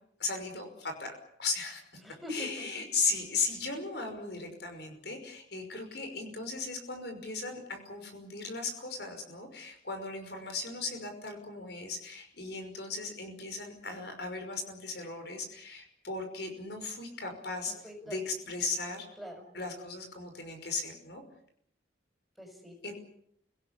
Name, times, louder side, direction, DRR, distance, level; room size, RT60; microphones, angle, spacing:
voice 1, 0.2-1.8 2.3-17.7 18.0-19.1 19.5-21.2 22.8-22.9, left 4 dB, 65° left, 5 dB, 5.6 m, -37 dB
voice 2, 1.9-2.9 17.6-18.3 19.2-19.5 22.4-22.9, left 1 dB, ahead, 3 dB, 6.0 m, -44 dB
29.5 x 18.0 x 8.5 m, 0.71 s
head